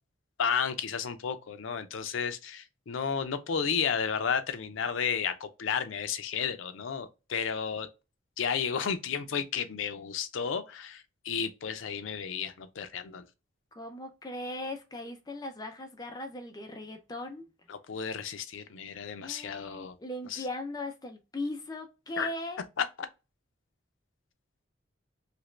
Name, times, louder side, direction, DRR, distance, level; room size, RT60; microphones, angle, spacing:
voice 1, 0.4-7.9 8.4-13.3 17.7-20.0 20.3-20.5 22.2-22.3 22.8-22.9, left 6 dB, 80° left, 0.5 m, -32 dB
voice 2, 13.7-17.5 19.2-22.6, left 1 dB, 20° left, 0.4 m, -38 dB
2.9 x 2.5 x 3.1 m
head